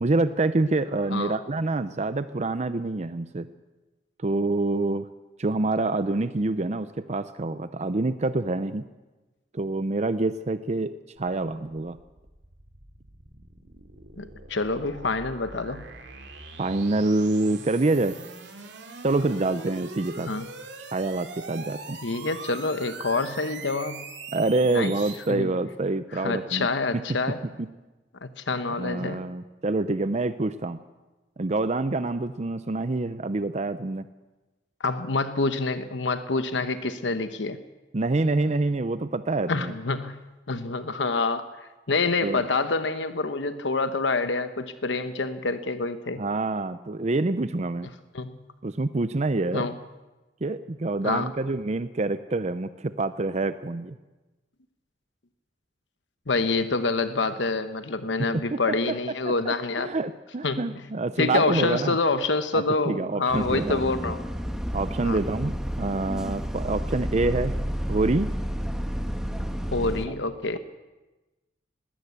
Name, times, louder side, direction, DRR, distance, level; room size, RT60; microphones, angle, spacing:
voice 1, 0.0-3.5 4.2-5.1 5.4-8.8 9.5-12.0 16.6-18.2 19.0-20.3 20.9-22.0 24.3-26.7 26.9-27.0 28.8-30.8 31.4-34.1 37.9-39.7 42.2-42.4 46.2-47.9 48.6-49.7 50.4-54.0 58.2-58.6 59.4-62.0 62.5-63.8 64.7-67.5 67.9-68.3, right 2 dB, 40° right, 12 dB, 0.6 m, -26 dB
sound 1, 11.2-25.3, right 4 dB, 70° right, 2.8 m, -42 dB
voice 2, 14.2-15.8 20.3-20.5 22.0-24.0 24.7-24.9 25.3-25.5 26.1-27.4 28.2-29.2 34.8-37.6 39.5-40.2 40.5-46.2 48.1-48.4 49.5-49.7 51.0-51.3 56.3-59.9 60.4-60.8 61.2-64.2 65.0-65.2 69.7-70.6, left 3 dB, 80° left, 10 dB, 1.0 m, -27 dB
Bus, 63.3-70.1, equal, 5° right, 1.3 m, -30 dB
20.5 x 16.5 x 8.2 m, 1.1 s
head